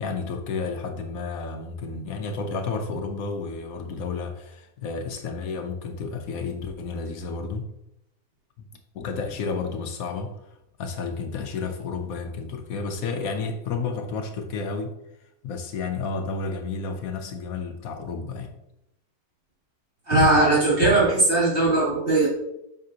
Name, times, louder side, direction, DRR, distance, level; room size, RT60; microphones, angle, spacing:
voice 1, 0.0-7.7 8.9-10.3 10.8-14.9 15.4-18.5, left 4 dB, 70° left, 5 dB, 1.1 m, -31 dB
voice 2, 20.1-22.3, right 2 dB, 40° right, -7 dB, 2.8 m, -19 dB
7.6 x 5.2 x 2.7 m, 0.84 s
omnidirectional pair, 1.6 m